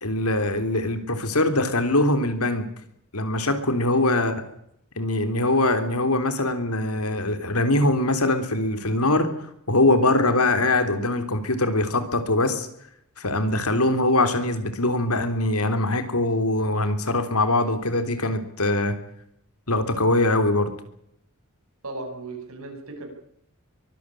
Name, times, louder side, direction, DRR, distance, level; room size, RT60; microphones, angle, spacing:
voice 1, 0.0-2.7 3.1-4.3 5.0-9.3 9.7-12.7 13.2-19.0 19.7-20.7, left 2 dB, 85° left, 9 dB, 3.5 m, -22 dB
voice 2, 21.8-23.1, right 2 dB, 75° right, 3 dB, 7.6 m, -36 dB
23.5 x 14.0 x 10.0 m, 0.72 s
head